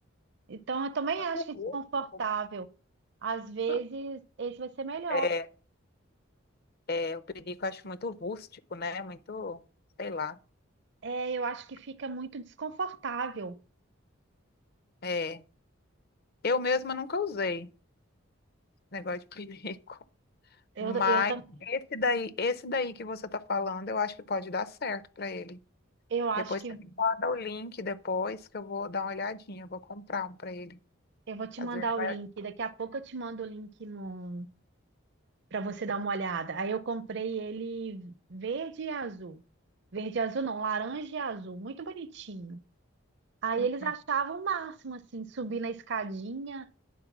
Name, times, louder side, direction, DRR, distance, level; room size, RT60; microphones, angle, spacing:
voice 1, 0.5-1.4 1.7-2.7 3.2-5.3 11.0-13.6 20.8-21.4 26.1-26.8 31.3-34.5 35.5-39.4 39.9-42.6 43.4-46.7, right 5 dB, 60° right, 0.6 m, -34 dB
voice 2, 1.3-1.8 3.7-3.8 5.1-5.5 6.9-9.6 10.0-10.4 15.0-15.4 16.4-17.7 18.9-20.0 20.8-21.3 21.6-25.6 26.5-26.6 27.0-30.8 31.6-32.1 43.6-43.9, left 4 dB, 50° left, 0.6 m, -32 dB
10.0 x 4.4 x 6.0 m
head